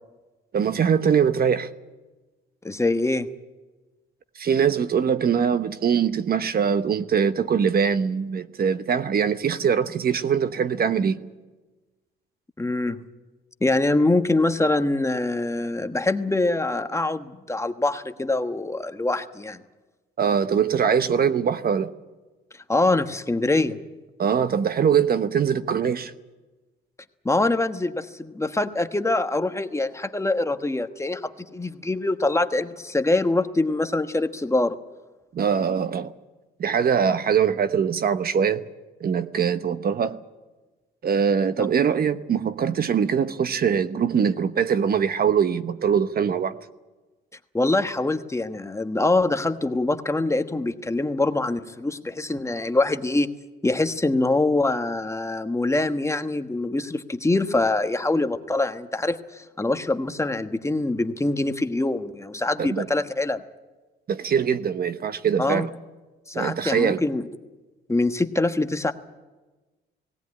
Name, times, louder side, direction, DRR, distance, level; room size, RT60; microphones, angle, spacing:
voice 1, 0.5-1.7 4.3-11.2 20.2-21.9 24.2-26.1 35.3-36.1 36.6-38.6 39.0-40.2 41.0-46.5 62.6-62.9 64.1-65.7 66.3-67.0, right 7 dB, 50° right, 1.1 m, -22 dB
voice 2, 2.6-3.3 12.6-13.0 13.6-19.6 22.7-23.8 27.2-34.8 47.5-53.3 53.6-63.4 65.4-65.7 66.3-67.3 67.9-68.9, left 2 dB, 15° left, 1.2 m, -24 dB
18.5 x 17.5 x 9.6 m
cardioid pair, 90°, 20 cm